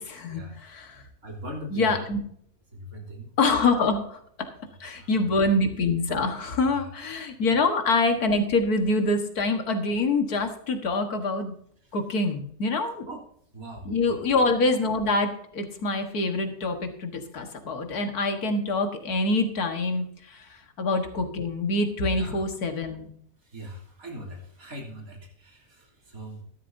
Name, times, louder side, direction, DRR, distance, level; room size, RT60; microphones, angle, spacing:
voice 1, 0.0-1.0 1.7-2.2 3.4-4.5 4.8-11.5 11.9-13.1 13.8-23.1, left 2 dB, 85° left, 6 dB, 2.1 m, -25 dB
voice 2, 1.2-2.1 2.7-3.3 4.9-5.1 6.6-6.9 13.1-13.3 13.5-14.2 22.1-22.4 23.5-26.4, equal, 70° right, 0 dB, 3.5 m, -40 dB
14.0 x 12.0 x 2.7 m, 0.63 s
omnidirectional pair, 1.6 m